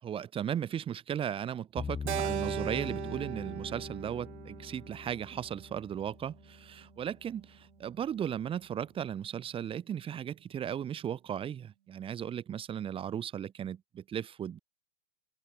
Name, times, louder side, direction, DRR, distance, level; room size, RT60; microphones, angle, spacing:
voice 1, 0.0-14.6, right 9 dB, 15° right, 7.2 m, -36 dB
sound 1, 1.8-6.9, left 6 dB, 10° left, 1.4 m, -42 dB
Keyboard (musical), 2.1-6.5, right 11 dB, 70° right, 3.0 m, -39 dB
open air
supercardioid pair, 170°, 35 cm